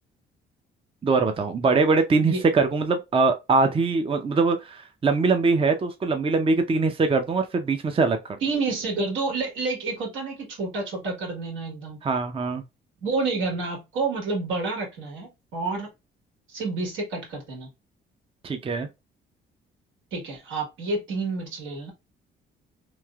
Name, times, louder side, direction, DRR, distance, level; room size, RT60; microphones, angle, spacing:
voice 1, 1.0-8.4 12.0-12.6 18.4-18.9, right 4 dB, 30° right, 0.5 m, -22 dB
voice 2, 8.4-12.0 13.0-15.9 16.5-17.7 20.1-21.9, right 3 dB, 85° right, 1.8 m, -29 dB
3.1 x 2.8 x 2.3 m
cardioid pair, 90°, 20 cm